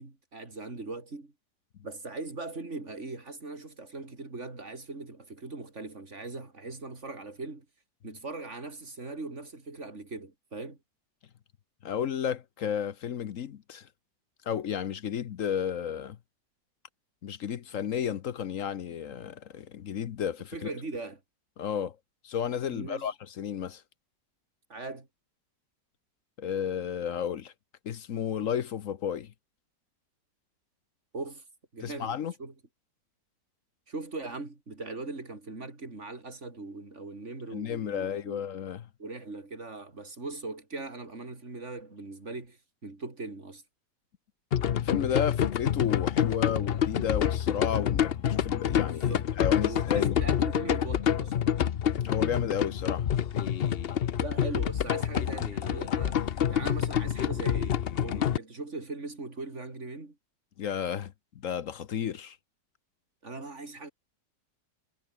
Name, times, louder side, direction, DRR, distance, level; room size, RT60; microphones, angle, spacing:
voice 1, 0.0-1.3 1.8-7.7 8.0-10.8 20.5-21.2 22.7-23.1 24.7-25.1 31.1-31.4 31.7-32.5 33.9-38.5 39.0-43.6 48.8-49.3 49.6-51.4 54.2-60.2 63.2-63.9, right 3 dB, 40° right, 4.4 m, -40 dB
voice 2, 11.8-13.9 14.5-16.2 17.2-20.5 21.6-22.0 22.2-23.8 26.4-27.5 27.8-29.3 31.8-32.3 37.5-38.9 44.7-50.2 52.0-53.0 60.6-62.4, left 8 dB, 55° left, 1.0 m, -32 dB
sound 1, 44.5-58.4, left 9 dB, 75° left, 0.5 m, -27 dB
omnidirectional pair, 2.0 m